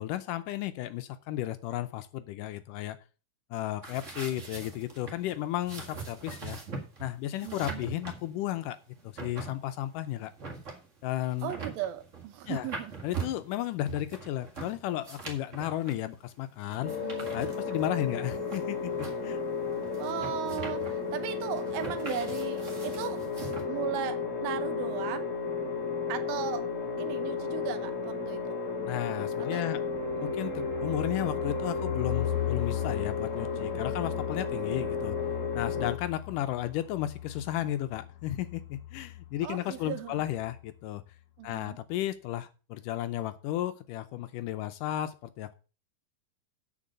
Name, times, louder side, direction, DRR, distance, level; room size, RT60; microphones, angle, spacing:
voice 1, 0.0-3.0 3.5-6.6 7.0-8.8 9.0-10.3 11.0-11.5 12.5-12.7 13.0-16.9 17.3-19.4 28.8-29.8 30.2-35.2 35.5-41.0 41.4-45.6, left 13 dB, 80° left, 2.1 m, -34 dB
sound 1, 3.8-23.6, right 5 dB, 30° right, 1.5 m, -42 dB
voice 2, 7.4-7.8 11.4-12.9 16.8-17.3 20.0-23.2 23.7-25.3 26.1-26.7 27.0-28.6 29.5-29.8 39.4-40.2 41.4-41.8, right 10 dB, 85° right, 2.9 m, -37 dB
sound 2, 16.8-35.9, left 4 dB, 40° left, 1.1 m, -33 dB
sound 3, 29.8-39.5 39.8-39.9 40.2-40.6, left 13 dB, 60° left, 1.5 m, -38 dB
7.8 x 6.1 x 7.5 m
omnidirectional pair, 4.1 m